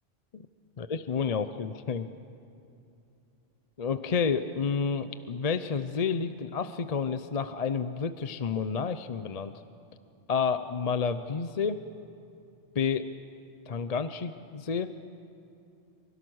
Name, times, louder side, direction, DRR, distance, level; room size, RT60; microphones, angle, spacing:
voice 1, 0.8-2.1 3.8-9.5 10.3-11.8 12.7-13.1 13.7-14.9, left 6 dB, 40° left, 11 dB, 0.6 m, -30 dB
26.0 x 24.0 x 6.3 m, 2.6 s
omnidirectional pair, 1.3 m